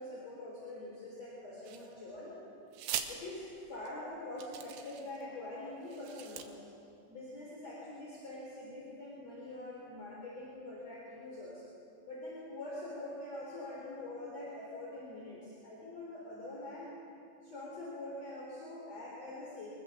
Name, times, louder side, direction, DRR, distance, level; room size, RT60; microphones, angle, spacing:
voice 1, 0.0-2.4 3.1-6.6 7.1-11.6 12.1-16.9 17.4-19.7, left 2 dB, 40° left, -5 dB, 5.0 m, -44 dB
sound 1, 1.6-2.2 2.7-3.1 3.9-4.0 4.4-5.2 5.8-6.5, right 10 dB, 85° right, 3.5 m, -41 dB
24.0 x 22.0 x 7.5 m, 2.6 s
omnidirectional pair, 4.8 m